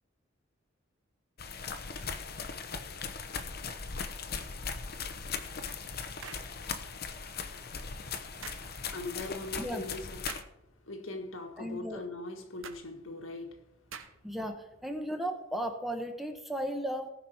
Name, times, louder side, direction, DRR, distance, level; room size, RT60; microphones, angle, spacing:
sound 1, 1.4-10.4, left 5 dB, 50° left, 0.9 m, -39 dB
sound 2, 6.2-6.5 8.4-8.7 10.3-10.5 12.6-12.8 13.9-14.3, right 6 dB, 85° right, 1.1 m, -44 dB
voice 1, 8.2-13.7 14.1-14.2, left 2 dB, 80° left, 4 dB, 1.8 m, -42 dB
voice 2, 11.6-12.0 14.2-17.1, equal, ahead, 4 dB, 1.1 m, -35 dB
18.0 x 6.1 x 4.5 m, 0.87 s
head